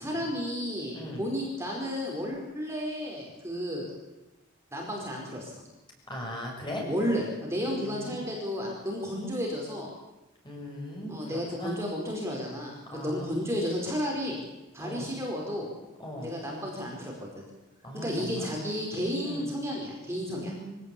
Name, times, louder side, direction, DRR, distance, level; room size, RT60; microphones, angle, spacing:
voice 1, 0.0-3.9 4.7-5.6 6.9-9.9 11.1-14.4 14.7-15.7 16.2-17.4 17.9-20.5, equal, 15° right, -2 dB, 4.8 m, -32 dB
voice 2, 0.9-1.3 6.1-6.9 7.7-8.3 10.4-11.8 12.9-13.4 14.8-15.1 16.0-16.3 17.8-18.5 19.2-19.5 20.3-20.7, left 1 dB, 20° left, -1 dB, 7.1 m, -39 dB
24.0 x 17.0 x 8.6 m, 1.0 s
head